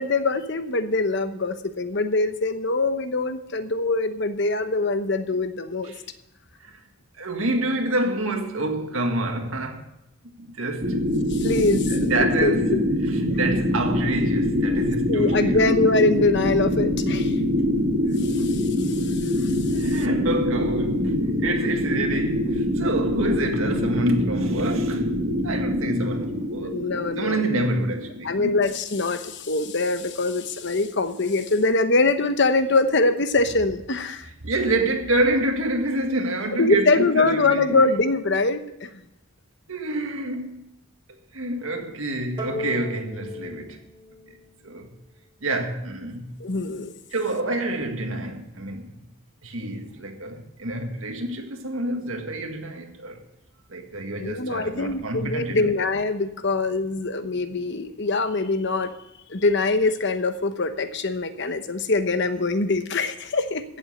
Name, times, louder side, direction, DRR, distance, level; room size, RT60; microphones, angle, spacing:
voice 1, 0.0-5.9 11.3-12.8 15.1-17.4 18.3-18.7 19.0-19.5 26.6-27.6 28.2-34.3 36.6-38.9 46.4-46.9 54.2-58.9 59.3-63.6, left 3 dB, 55° left, 1.0 m, -23 dB
voice 2, 7.2-9.9 10.4-11.0 11.9-15.7 18.2-18.5 19.7-25.1 25.4-26.8 27.2-28.5 34.4-37.9 39.7-40.7 41.3-43.8 44.6-44.9 45.4-46.3 47.1-48.9 49.4-53.2 53.7-55.7, right 2 dB, 75° right, 1.8 m, -28 dB
sound 1, 10.8-28.4, left 1 dB, 50° right, 2.0 m, -24 dB
sound 2, 42.4-45.0, left 2 dB, 20° right, 2.3 m, -36 dB
15.5 x 7.5 x 7.1 m
head